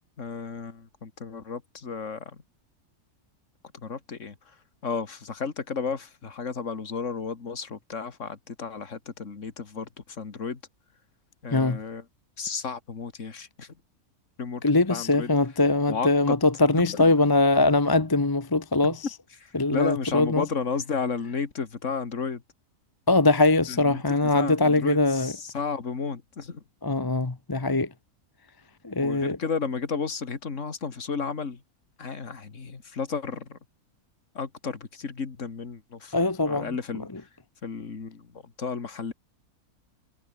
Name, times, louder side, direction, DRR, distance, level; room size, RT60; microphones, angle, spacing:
voice 1, 0.2-2.4 3.7-4.4 4.8-10.6 11.4-12.0 12.4-13.7 14.4-14.6 14.9-15.3 15.9-16.4 16.7-17.1 19.4-22.4 23.7-24.0 24.3-26.6 29.0-31.6 32.0-33.6 34.3-36.1 36.5-37.3 37.6-38.3 38.6-39.1, left 5 dB, 55° left, 2.5 m, -33 dB
voice 2, 14.6-19.1 19.5-20.4 23.1-25.3 26.8-27.9 28.8-29.4 36.1-36.7 37.1-37.2, left 2 dB, 20° left, 0.8 m, -22 dB
omnidirectional pair, 1.6 m